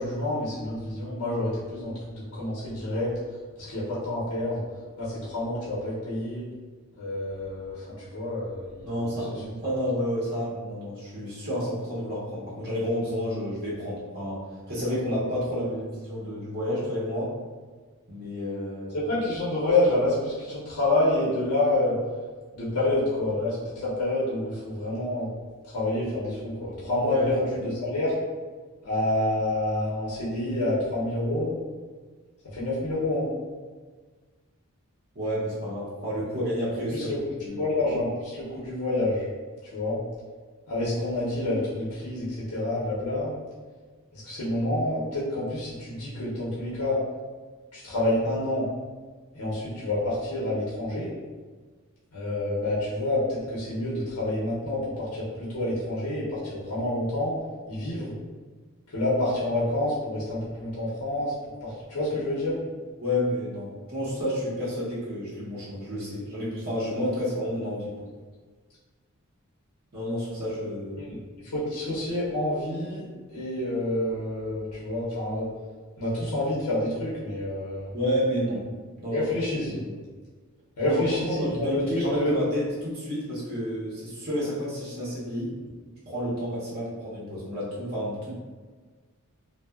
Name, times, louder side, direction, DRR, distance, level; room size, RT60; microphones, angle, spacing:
voice 1, 0.0-3.1 3.6-4.6 5.0-6.5 7.0-9.0 18.9-22.0 22.5-25.3 25.6-28.1 28.8-31.5 32.4-33.3 36.9-39.3 39.6-40.0 40.7-43.3 44.1-47.0 47.7-48.7 49.3-51.1 52.1-57.4 57.7-58.1 58.9-61.3 61.6-62.6 71.0-71.2 71.4-73.0 73.3-75.5 76.0-77.9 79.1-79.8 80.8-82.4, left 1 dB, 80° left, -7 dB, 0.7 m, -28 dB
voice 2, 8.8-17.3 18.1-19.0 27.0-27.2 27.6-27.7 35.1-37.1 37.4-37.7 63.0-67.9 69.9-71.2 77.9-78.6 79.0-79.3 79.7-80.0 80.8-81.0 81.3-85.5 86.1-88.3, equal, 45° right, -8 dB, 0.7 m, -30 dB
2.7 x 2.0 x 2.3 m, 1.5 s
head